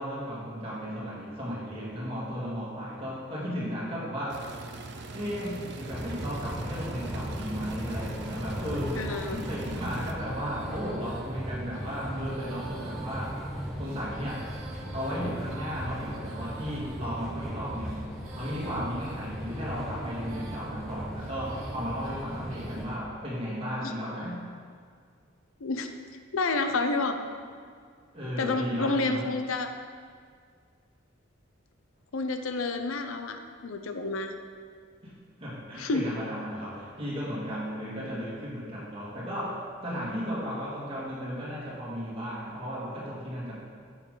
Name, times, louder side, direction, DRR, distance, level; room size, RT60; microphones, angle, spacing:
voice 1, 0.0-4.5 5.1-13.4 13.8-14.5 14.9-18.0 18.3-24.5 28.1-29.3 35.0-35.1 35.4-43.6, equal, 30° right, -6 dB, 2.2 m, -35 dB
sound 1, 4.3-10.1, right 3 dB, 55° right, 0.6 m, -42 dB
sound 2, 5.9-23.0, equal, ahead, 0.8 m, -38 dB
voice 2, 9.0-9.4 23.8-23.9 25.6-25.9 26.3-27.3 28.4-29.7 32.1-34.4 35.8-36.1, left 3 dB, 85° left, 7 dB, 0.6 m, -29 dB
Female singing, 9.2-22.8, right 2 dB, 90° right, 1.2 m, -48 dB
8.8 x 7.0 x 3.9 m, 2.1 s
head